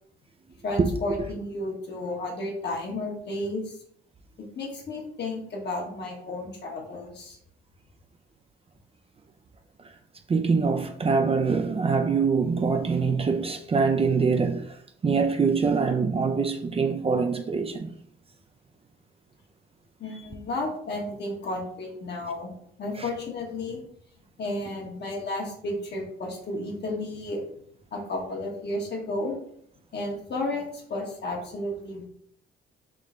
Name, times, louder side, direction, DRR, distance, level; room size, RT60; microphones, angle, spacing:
voice 1, 0.6-3.8 4.5-7.4 20.0-22.5 22.8-23.8 24.4-27.4 27.9-29.3 29.9-32.1, left 2 dB, 60° left, 1.3 m, -32 dB
voice 2, 10.3-14.6 15.0-17.9, right 5 dB, 30° right, 0.5 m, -24 dB
3.7 x 3.1 x 3.8 m
cardioid pair, 90°, 20 cm